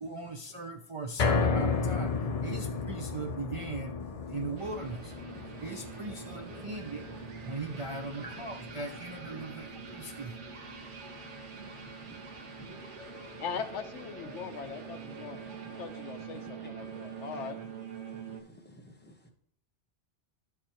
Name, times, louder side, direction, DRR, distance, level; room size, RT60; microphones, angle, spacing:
voice 1, 0.0-4.0 4.3-5.1 5.6-7.1 7.4-10.3, right 3 dB, 40° right, 0.5 m, -39 dB
sound 1, 1.2-13.4 13.8-13.9 14.4-14.5, left 4 dB, 40° left, 0.6 m, -35 dB
sound 2, 4.6-18.4, right 6 dB, 90° right, 1.4 m, -45 dB
voice 2, 7.5-8.4 9.3-9.9 11.3-11.4 12.0-12.8 14.2-14.4 14.9-15.8 16.3-17.2 18.3-19.3, equal, 10° left, 1.0 m, -52 dB
voice 3, 12.7-15.4 15.8-17.6, left 6 dB, 85° left, 1.0 m, -41 dB
12.0 x 4.8 x 2.9 m
omnidirectional pair, 1.2 m